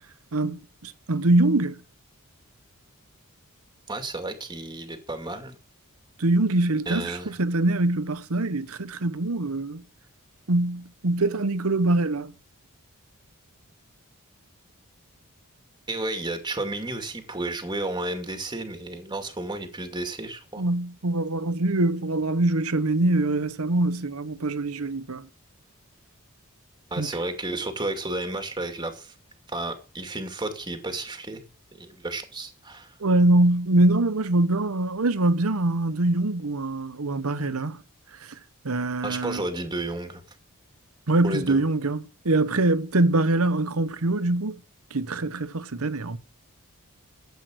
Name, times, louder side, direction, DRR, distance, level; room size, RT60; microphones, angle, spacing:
voice 1, 0.3-1.8 6.2-9.8 10.5-12.3 20.6-25.3 27.0-27.1 33.0-37.8 38.6-39.4 41.1-44.6 44.9-46.2, right 2 dB, 70° right, 1.0 m, -24 dB
voice 2, 3.9-5.6 6.9-7.3 15.9-20.6 26.9-29.1 29.5-31.4 31.7-32.9 39.0-40.2 41.2-41.6, right 2 dB, 20° right, 2.3 m, -32 dB
12.5 x 8.5 x 6.3 m
head